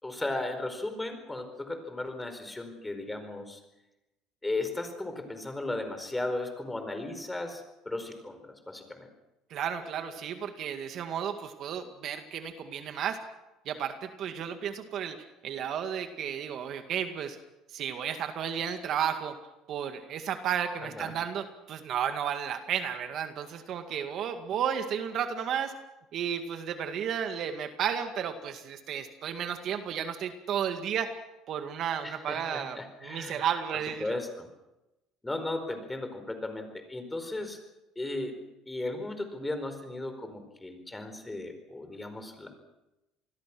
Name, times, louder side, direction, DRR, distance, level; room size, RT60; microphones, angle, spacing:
voice 1, 0.0-3.6 4.4-9.1 20.8-21.1 32.0-33.4 34.0-34.5 35.2-37.6 38.0-38.4 38.7-42.5, left 2 dB, 10° left, 7 dB, 4.6 m, -36 dB
voice 2, 9.5-13.2 13.7-15.2 15.4-17.4 17.7-19.4 19.7-25.8 26.1-31.2 31.5-34.2, right 8 dB, 50° right, 7 dB, 2.1 m, -33 dB
28.0 x 21.0 x 6.2 m, 0.97 s
cardioid pair, 125°, 0 cm